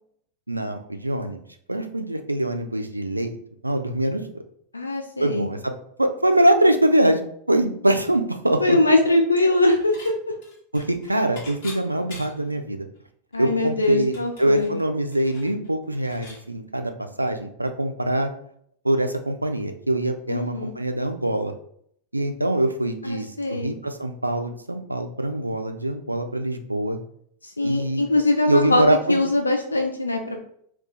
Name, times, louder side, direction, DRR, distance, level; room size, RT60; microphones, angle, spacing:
voice 1, 0.5-1.4 1.7-3.4 3.6-4.2 5.2-5.7 6.0-7.2 7.5-8.8 10.7-12.9 13.4-16.9 17.2-18.3 18.8-21.5 22.1-27.0 27.6-28.0 28.5-29.2, right 1 dB, 85° right, 7 dB, 0.3 m, -23 dB
voice 2, 4.7-5.5 8.6-10.1 13.3-14.7 20.3-20.7 23.0-23.7 27.4-30.4, left 2 dB, 80° left, 3 dB, 0.3 m, -22 dB
Dishes pots and pans / Chink clink, 9.4-10.1 10.4-12.5 13.0-13.1 13.3-16.4, left 3 dB, 50° left, 1.0 m, -44 dB
2.4 x 2.3 x 3.9 m, 0.66 s
figure-of-eight pair, 90°, 0 cm